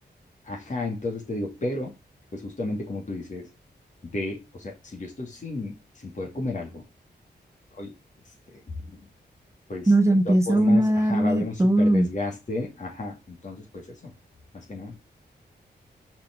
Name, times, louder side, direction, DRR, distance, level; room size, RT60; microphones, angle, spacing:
voice 1, 0.4-1.9 2.3-3.5 4.0-6.8 7.8-7.9 8.9-9.0 9.7-9.9 10.2-14.1 14.5-15.0, left 2 dB, 45° left, 2.6 m, -33 dB
voice 2, 9.9-12.1, right 1 dB, 15° right, 0.7 m, -20 dB
5.6 x 5.0 x 4.5 m
wide cardioid pair, 95°, 18 cm